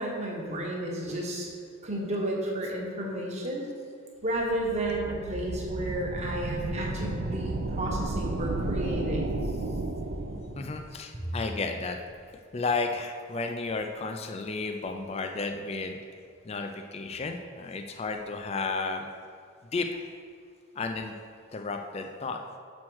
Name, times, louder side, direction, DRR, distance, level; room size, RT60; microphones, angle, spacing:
voice 1, 0.0-1.5 1.8-3.6 4.2-9.4, right 1 dB, 30° right, -2 dB, 1.1 m, -32 dB
sound 1, 4.3-10.8, right 2 dB, 55° right, 0.5 m, -33 dB
voice 2, 10.6-12.0 12.5-16.0 16.4-19.1 19.7-20.1 20.8-21.1 21.5-22.4, left 3 dB, 30° left, 5 dB, 0.4 m, -32 dB
6.2 x 4.3 x 6.2 m, 2.2 s
head